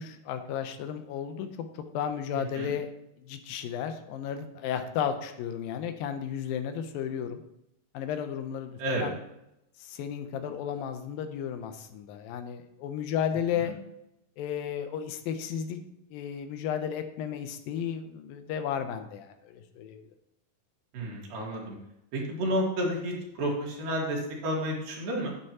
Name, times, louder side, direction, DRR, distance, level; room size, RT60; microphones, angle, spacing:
voice 1, 0.0-1.7 1.9-2.9 3.2-7.4 7.9-9.2 9.8-13.7 14.4-15.8 16.1-20.0, left 8 dB, 90° left, 8 dB, 2.6 m, -33 dB
voice 2, 2.4-2.7 8.8-9.1 13.7-13.8 20.9-21.8 22.1-25.3, equal, 80° right, -2 dB, 3.8 m, -31 dB
9.7 x 8.9 x 2.9 m, 0.84 s
omnidirectional pair, 4.0 m